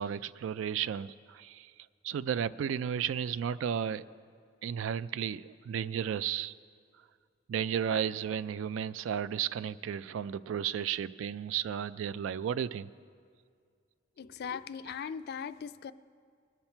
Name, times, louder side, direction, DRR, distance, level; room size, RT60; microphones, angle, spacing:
voice 1, 0.0-1.7 2.0-4.0 4.6-6.5 7.5-12.9, right 8 dB, 70° right, 16 dB, 0.3 m, -33 dB
voice 2, 14.2-15.9, left 7 dB, 55° left, 13 dB, 0.3 m, -39 dB
20.5 x 7.3 x 4.4 m, 2.2 s
head